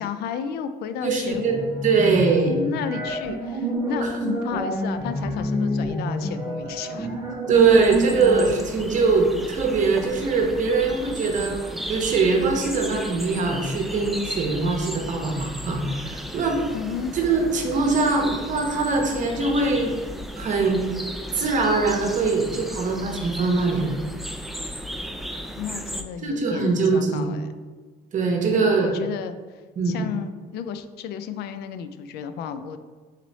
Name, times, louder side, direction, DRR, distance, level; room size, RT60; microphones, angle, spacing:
voice 1, 0.0-1.4 2.5-7.1 16.7-17.1 25.4-27.5 28.5-29.4 29.9-32.8, left 7 dB, 75° left, 10 dB, 0.4 m, -32 dB
voice 2, 1.0-2.6 7.5-11.6 11.9-16.6 17.1-19.9 20.4-20.9 21.3-24.0 26.2-27.3 28.1-28.9 29.8-30.0, right 4 dB, 50° right, 2 dB, 0.9 m, -22 dB
sound 1, 1.3-8.5, equal, 20° right, 1.3 m, -28 dB
sound 2, 7.5-26.0, equal, ahead, 0.3 m, -35 dB
4.1 x 3.1 x 4.1 m, 1.4 s
cardioid pair, 110°, 17 cm